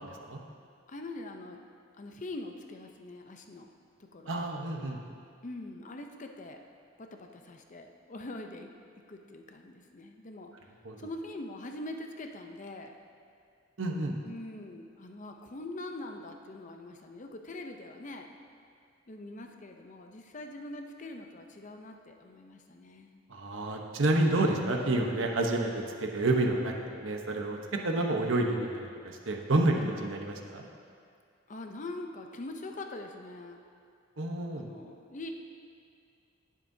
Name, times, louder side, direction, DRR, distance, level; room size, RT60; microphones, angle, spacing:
voice 1, 0.0-0.4 4.3-5.0 10.8-11.0 13.8-14.1 23.3-27.6 27.8-30.7 34.2-34.6, right 2 dB, 75° right, 2 dB, 1.0 m, -29 dB
voice 2, 0.9-1.7 2.0-3.7 4.0-4.5 5.4-6.6 7.0-8.7 9.1-10.7 11.0-13.0 14.2-18.3 19.1-23.2 31.5-33.6 34.5-35.3, left 2 dB, 40° left, 4 dB, 0.6 m, -43 dB
19.0 x 7.4 x 2.8 m, 2.3 s
head